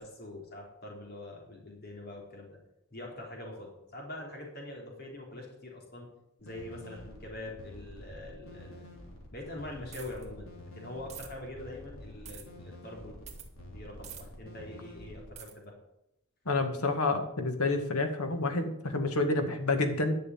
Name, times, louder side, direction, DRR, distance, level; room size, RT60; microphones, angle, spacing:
voice 1, 0.0-2.6 2.9-6.1 6.4-8.8 9.3-13.2 13.7-15.8, left 1 dB, 45° left, -1 dB, 3.9 m, -44 dB
sound 1, 6.4-15.3, left 1 dB, 70° left, 3.6 m, -48 dB
sound 2, 9.9-10.2 11.1-11.3 12.2-12.4 13.3-13.5 14.0-14.2 15.4-15.5, right 9 dB, 30° right, 1.9 m, -46 dB
voice 2, 16.5-20.2, left 2 dB, 90° left, 6 dB, 2.0 m, -29 dB
11.0 x 6.7 x 9.3 m, 0.81 s
head